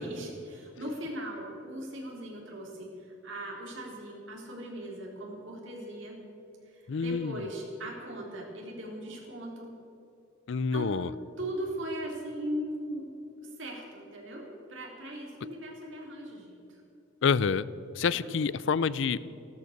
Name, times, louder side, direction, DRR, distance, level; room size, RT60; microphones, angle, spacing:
voice 1, 0.0-6.2 6.6-9.7 10.7-11.0 11.4-13.2 13.6-14.4 14.7-16.8 18.0-18.3, right 1 dB, 70° right, -1 dB, 3.7 m, -39 dB
voice 2, 6.9-7.4 10.5-11.1 17.2-17.7 17.9-19.3, left 5 dB, 65° left, 18 dB, 0.4 m, -27 dB
15.0 x 12.5 x 6.7 m, 2.7 s
head